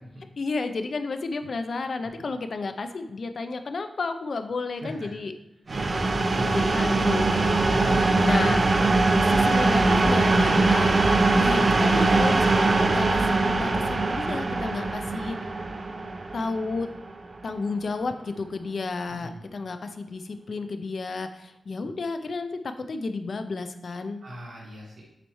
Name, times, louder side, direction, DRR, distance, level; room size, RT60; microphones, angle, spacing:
voice 1, 0.4-5.3 6.4-9.0 9.3-11.0 11.4-15.4 16.3-16.9 17.4-22.5 22.9-24.2, left 3 dB, 55° left, 8 dB, 0.5 m, -32 dB
sound 1, 5.7-17.3, right 3 dB, 40° right, 0.5 m, -22 dB
voice 2, 6.3-6.7 7.7-8.5 19.2-19.3 24.2-25.0, equal, 85° right, -5 dB, 1.6 m, -38 dB
8.1 x 4.1 x 3.1 m, 0.88 s
wide cardioid pair, 120°, 0 cm